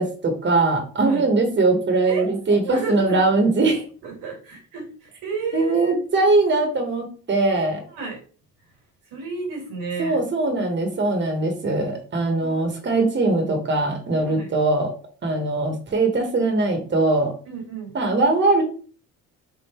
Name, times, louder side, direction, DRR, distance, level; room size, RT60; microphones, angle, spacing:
voice 1, 0.0-3.8 5.5-7.9 10.0-14.9 15.2-17.3 17.9-18.6, right 2 dB, 30° right, 3 dB, 1.2 m, -21 dB
voice 2, 2.1-3.3 4.0-5.9 7.9-8.2 9.1-10.2 12.4-12.7 14.4-14.5 17.5-17.9, right 4 dB, 80° right, 1 dB, 1.9 m, -32 dB
3.7 x 2.5 x 4.3 m, 0.40 s
supercardioid pair, 75°, 39 cm